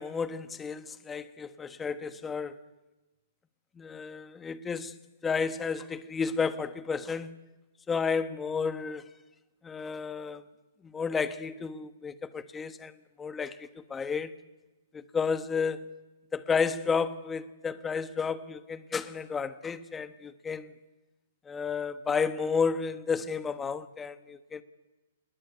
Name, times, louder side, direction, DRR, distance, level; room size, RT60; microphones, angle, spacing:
voice 1, 0.0-2.6 3.8-4.9 5.2-7.4 7.9-9.1 9.6-10.4 10.8-12.9 13.2-14.3 14.9-15.9 16.3-20.7 21.4-24.6, left 5 dB, 10° left, 1.2 m, -32 dB
29.0 x 20.5 x 9.6 m
hypercardioid pair, 150°, 0 cm